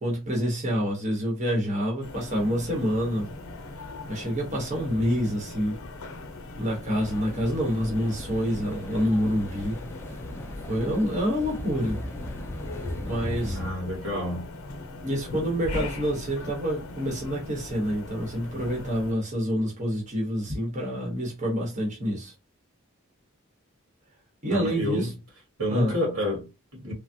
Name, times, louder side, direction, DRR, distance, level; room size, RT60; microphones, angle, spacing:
voice 1, 0.0-3.3 4.1-5.8 6.6-9.8 10.7-12.0 13.0-13.6 15.0-22.3 24.4-25.1 25.7-25.9, equal, 35° right, 1.0 m, -27 dB
sound 1, 2.0-19.1, left 2 dB, 90° left, 0.7 m, -39 dB
sound 2, 7.0-13.7, left 1 dB, 10° left, 0.4 m, -38 dB
voice 2, 13.4-14.5 24.5-25.1 25.6-26.9, left 1 dB, 90° right, 1.8 m, -29 dB
3.4 x 2.2 x 2.6 m
head